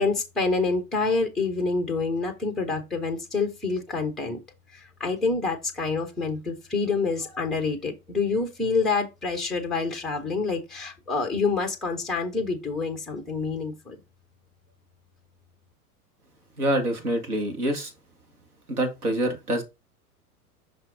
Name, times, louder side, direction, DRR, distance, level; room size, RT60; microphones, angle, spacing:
voice 1, 0.0-4.4 4.7-14.0, left 4 dB, ahead, 0.3 m, -27 dB
voice 2, 16.6-17.9 18.7-19.6, right 1 dB, 75° right, 2.1 m, -26 dB
5.9 x 4.3 x 3.6 m
figure-of-eight pair, 95°, 45 cm